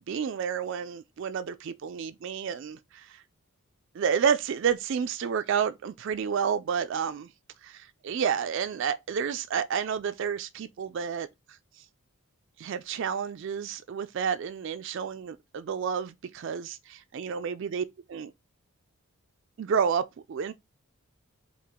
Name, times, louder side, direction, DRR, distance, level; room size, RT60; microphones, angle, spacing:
voice 1, 0.1-3.2 3.9-7.3 7.6-11.6 12.6-18.3 19.6-20.5, right 7 dB, 55° right, 0.3 m, -30 dB
4.7 x 2.4 x 3.5 m
head